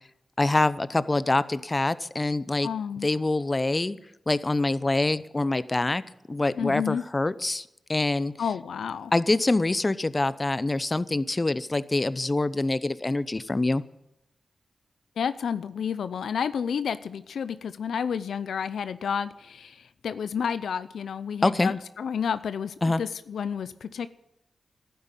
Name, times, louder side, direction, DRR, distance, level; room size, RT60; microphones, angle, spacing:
voice 1, 0.4-2.7 3.0-4.0 4.3-6.0 6.3-8.3 9.1-13.8 21.4-21.7 22.8-23.0, left 2 dB, 30° left, 16 dB, 0.7 m, -25 dB
voice 2, 2.6-3.1 6.6-7.0 8.4-9.1 15.2-24.1, left 7 dB, 90° left, 14 dB, 0.5 m, -30 dB
12.5 x 9.4 x 8.9 m, 0.88 s
cardioid pair, 55°, 0 cm